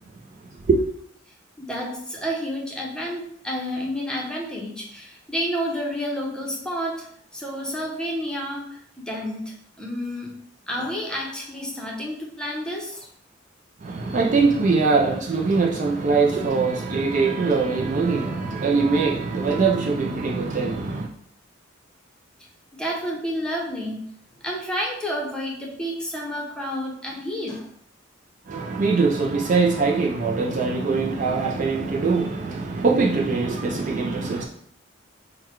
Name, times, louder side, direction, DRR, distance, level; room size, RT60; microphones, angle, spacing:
voice 1, 1.6-7.1 7.3-10.3 10.7-13.1 22.8-24.0 24.4-27.7, equal, 5° left, 0.8 m, -30 dB
voice 2, 13.8-21.1 28.5-34.4, right 4 dB, 40° right, 0.4 m, -22 dB
3.8 x 2.2 x 4.5 m
head